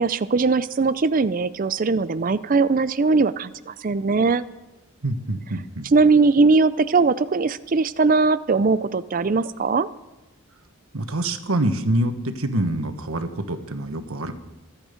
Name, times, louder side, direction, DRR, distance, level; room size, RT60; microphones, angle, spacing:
voice 1, 0.0-4.4 5.9-9.9, right 4 dB, 40° right, 14 dB, 0.4 m, -20 dB
voice 2, 5.0-5.9 10.9-14.3, right 1 dB, 90° right, 8 dB, 1.3 m, -25 dB
25.0 x 8.7 x 5.2 m, 1.0 s
head